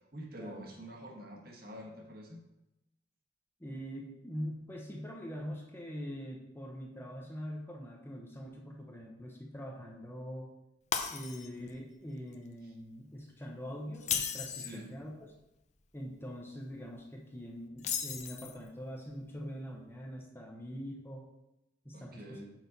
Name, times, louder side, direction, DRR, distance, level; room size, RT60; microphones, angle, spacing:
voice 1, 0.1-2.4 12.6-12.7 14.5-14.8 21.9-22.4, right 1 dB, 55° right, 0 dB, 1.4 m, -47 dB
voice 2, 3.6-10.5 11.1-15.3 15.9-21.2 21.8-22.4, equal, 15° left, 0 dB, 0.8 m, -43 dB
Shatter, 10.9-11.7 12.1-12.3 13.9-14.8 17.8-18.7, left 7 dB, 40° left, 0.6 m, -35 dB
6.3 x 5.4 x 4.0 m, 0.91 s
head